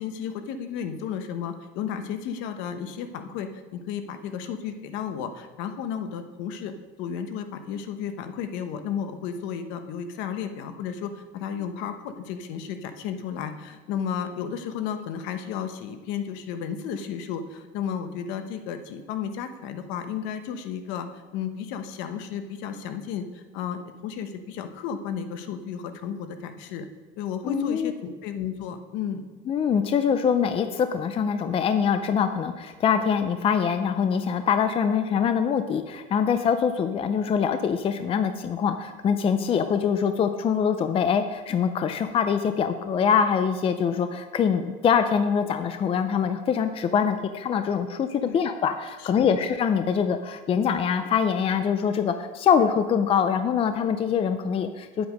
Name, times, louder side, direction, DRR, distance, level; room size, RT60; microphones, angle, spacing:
voice 1, 0.0-21.1 21.3-26.9 27.2-29.2 48.2-48.4 49.0-49.3, left 7 dB, 65° left, 8 dB, 1.1 m, -33 dB
voice 2, 27.4-27.9 29.5-55.1, left 7 dB, 30° left, 9 dB, 0.5 m, -24 dB
10.0 x 7.9 x 5.2 m, 1.4 s
cardioid pair, 130°, 20 cm